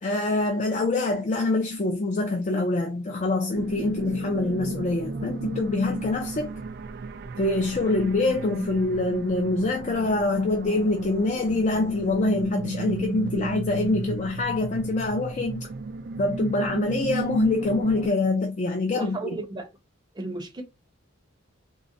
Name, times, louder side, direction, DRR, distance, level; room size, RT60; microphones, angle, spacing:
voice 1, 0.0-6.6 7.4-15.7 16.2-19.4, left 2 dB, 35° left, 0.4 m, -25 dB
sound 1, 3.5-18.1, right 3 dB, 50° right, 0.3 m, -34 dB
voice 2, 18.9-19.7 20.2-20.6, right 2 dB, 20° right, 0.7 m, -34 dB
3.7 x 2.0 x 2.5 m
head